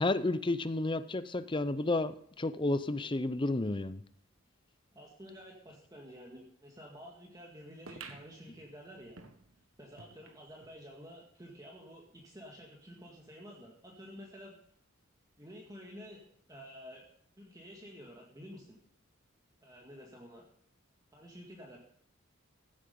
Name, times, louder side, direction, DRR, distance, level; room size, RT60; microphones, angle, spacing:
voice 1, 0.0-4.0, left 2 dB, 25° left, 14 dB, 0.6 m, -31 dB
voice 2, 4.9-9.2 9.8-14.6 15.4-16.2 16.5-17.1 17.4-18.8 19.6-20.4 21.1-21.8, equal, 20° right, -1 dB, 2.0 m, -50 dB
sound 1, 7.9-10.8 11.3-11.4 11.6-11.7 12.4-12.5, right 4 dB, 90° right, 1.5 m, -52 dB
16.0 x 8.7 x 5.3 m, 0.64 s
head